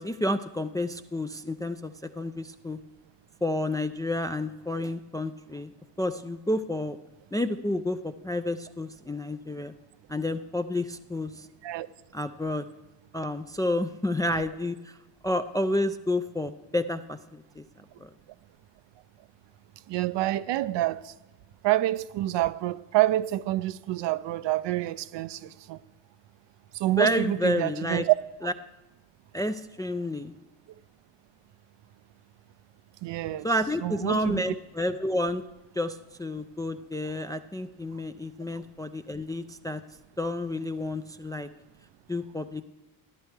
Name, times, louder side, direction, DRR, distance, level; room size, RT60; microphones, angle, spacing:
voice 1, 0.0-2.8 3.4-5.7 6.0-7.0 7.3-9.7 10.1-11.5 12.1-12.6 13.1-14.8 15.2-17.6 18.0-18.1 27.0-28.0 28.4-28.5 29.3-30.3 33.4-35.4 35.8-39.8 40.2-41.5 42.1-42.6, left 1 dB, 10° left, 0.3 m, -30 dB
voice 2, 19.9-21.1 21.6-25.8 26.7-28.1 28.4-28.5 33.0-33.5 33.8-34.5, right 15 dB, 60° right, 0.6 m, -27 dB
13.5 x 10.5 x 3.3 m
supercardioid pair, 65°, 48 cm